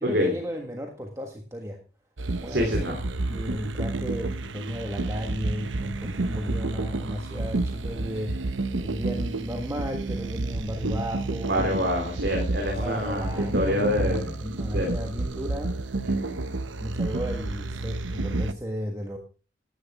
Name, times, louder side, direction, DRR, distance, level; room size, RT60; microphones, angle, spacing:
voice 1, 0.0-1.8 2.4-3.0 3.3-8.5 8.8-11.9 12.8-15.7 16.8-19.2, equal, 15° right, 2 dB, 1.5 m, -34 dB
sound 1, 2.2-18.5, right 2 dB, 80° right, 0.9 m, -30 dB
voice 2, 2.5-3.0 11.4-14.3 14.7-14.9 16.0-16.4, equal, 55° right, 1 dB, 3.2 m, -26 dB
14.5 x 11.0 x 3.5 m, 0.35 s
head